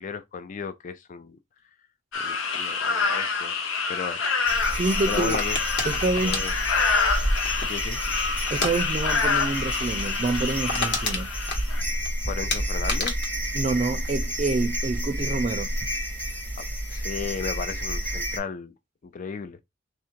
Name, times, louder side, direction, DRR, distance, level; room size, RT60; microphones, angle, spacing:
voice 1, 0.0-1.4 2.2-3.5 3.9-4.2 5.1-5.6 6.2-6.5 7.6-8.0 12.3-13.1 16.6-18.7 19.0-19.6, left 5 dB, 40° left, 0.4 m, -34 dB
sound 1, 2.1-11.8, left 4 dB, 85° left, 0.7 m, -27 dB
sound 2, 4.5-18.4, equal, 10° left, 0.9 m, -30 dB
voice 2, 4.7-5.4 5.8-6.5 8.5-11.3 13.5-15.7, right 3 dB, 35° right, 0.4 m, -27 dB
sound 3, 5.3-7.9 8.5-8.8 9.0-9.3 9.6-9.7 10.1-10.2 10.4-12.1 12.5-14.5 14.8-15.3, left 2 dB, 60° left, 1.2 m, -31 dB
3.4 x 2.4 x 4.4 m
head